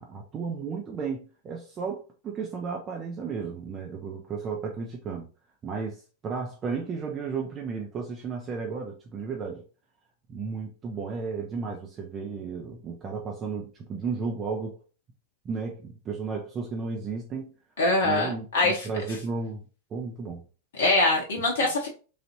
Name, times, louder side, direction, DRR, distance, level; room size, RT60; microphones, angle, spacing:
voice 1, 0.0-5.3 5.6-9.6 10.3-14.8 15.4-17.5 18.0-20.4, right 5 dB, 25° right, 1 dB, 0.5 m, -34 dB
voice 2, 17.8-18.9 20.8-21.9, left 2 dB, 60° left, 0 dB, 0.7 m, -23 dB
3.2 x 2.4 x 2.8 m, 0.36 s
figure-of-eight pair, 90°, 0 cm